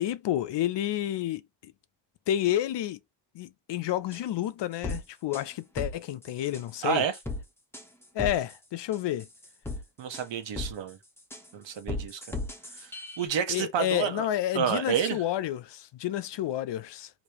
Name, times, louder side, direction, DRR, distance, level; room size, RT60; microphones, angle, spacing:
voice 1, 0.0-1.7 2.3-3.0 3.3-7.0 8.1-9.3 13.5-17.1, left 12 dB, 70° left, 0.6 m, -30 dB
sound 1, 4.1-4.2 4.8-5.0 5.3-5.4 5.8-5.9 6.2-6.6 7.1-7.4 7.7-7.8 8.2-8.6 8.9-9.8 10.1-10.2 10.6-10.7 11.2-11.5 11.9-13.2, left 2 dB, 5° left, 1.0 m, -35 dB
voice 2, 6.8-7.1 10.0-11.0 11.5-12.4 12.7-14.3 14.5-15.2, right 8 dB, 90° right, 1.1 m, -30 dB
4.9 x 3.0 x 2.9 m
cardioid pair, 120°, 43 cm